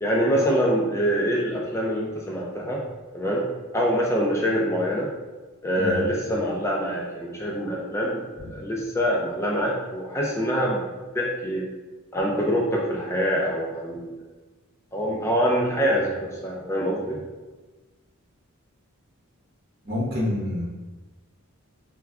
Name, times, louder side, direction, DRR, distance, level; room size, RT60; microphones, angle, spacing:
voice 1, 0.0-2.8 3.1-3.4 3.7-5.1 5.6-10.8 11.1-11.7 12.1-14.2 14.9-17.2, equal, 15° left, -3 dB, 0.3 m, -25 dB
voice 2, 19.8-20.7, left 1 dB, 45° right, -6 dB, 0.9 m, -27 dB
2.2 x 2.2 x 3.5 m, 1.2 s
head